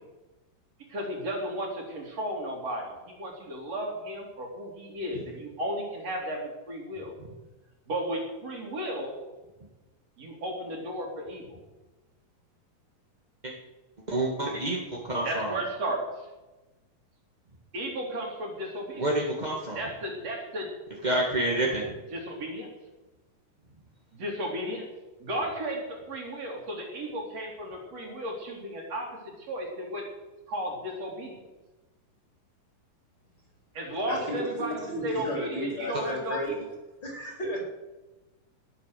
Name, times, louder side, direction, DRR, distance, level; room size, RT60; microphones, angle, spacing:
voice 1, 0.9-7.1 7.9-9.1 10.2-11.6 15.2-16.3 17.7-19.1 19.7-20.7 22.1-22.7 24.1-24.9 25.2-29.2 29.5-30.1 30.5-31.4 33.7-36.5, right 1 dB, 45° right, -1 dB, 4.2 m, -34 dB
voice 2, 14.1-15.5 19.0-19.8 21.0-21.9 35.9-36.0, right 1 dB, 20° right, -2 dB, 1.2 m, -28 dB
voice 3, 34.1-36.5 37.0-37.6, equal, 30° left, 0 dB, 4.6 m, -33 dB
20.0 x 8.7 x 6.9 m, 1.1 s
omnidirectional pair, 4.0 m